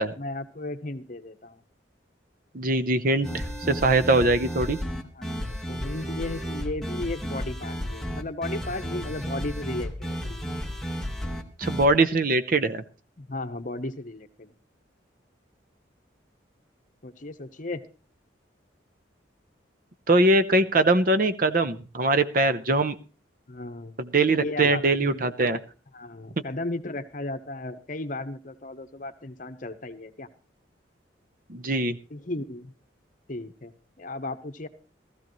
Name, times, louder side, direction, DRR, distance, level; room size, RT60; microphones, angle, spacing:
voice 1, 0.2-1.6 5.1-10.5 13.2-14.5 17.0-17.8 23.5-24.0 24.3-25.2 25.9-30.3 32.1-32.7 33.3-34.7, left 2 dB, 45° left, 10 dB, 0.9 m, -35 dB
voice 2, 2.5-4.8 11.6-12.8 20.1-23.0 24.0-25.6 31.5-32.0, right 2 dB, 50° right, 13 dB, 0.7 m, -22 dB
sound 1, 3.2-11.9, equal, ahead, 1.2 m, -33 dB
16.0 x 14.0 x 3.1 m, 0.36 s
head